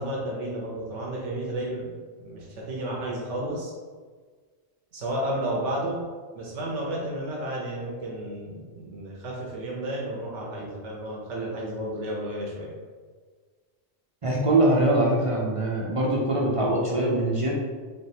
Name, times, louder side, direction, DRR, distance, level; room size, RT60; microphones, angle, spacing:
voice 1, 0.0-1.9 2.2-3.7 4.9-6.0 6.3-12.7, right 1 dB, 90° right, -3 dB, 1.1 m, -32 dB
voice 2, 14.2-17.5, right 1 dB, 40° right, -4 dB, 0.5 m, -23 dB
3.6 x 3.5 x 2.8 m, 1.5 s
omnidirectional pair, 1.2 m